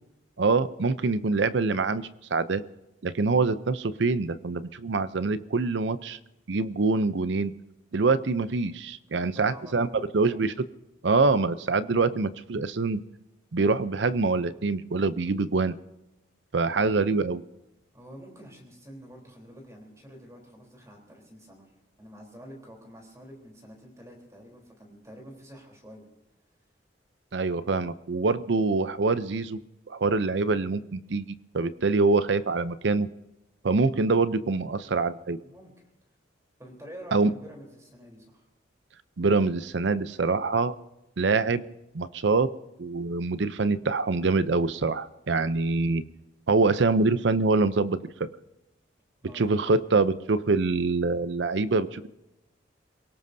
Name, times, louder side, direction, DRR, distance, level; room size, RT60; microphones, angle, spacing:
voice 1, 0.4-2.6 3.0-6.2 6.5-7.5 7.9-9.9 10.1-10.7 11.0-13.0 13.5-15.8 16.5-17.4 27.3-29.6 29.9-33.1 33.6-35.4 37.1-37.3 39.2-40.7 41.2-41.6 41.9-42.5 42.8-46.0 46.5-48.3 49.3-52.1, right 3 dB, 70° right, 15 dB, 0.6 m, -25 dB
voice 2, 9.1-10.5 16.7-17.0 17.9-21.7 22.0-26.1 34.8-35.0 35.4-35.7 36.6-38.4 49.2-49.8, equal, 15° right, 1 dB, 3.6 m, -48 dB
27.0 x 18.0 x 2.7 m, 0.94 s
head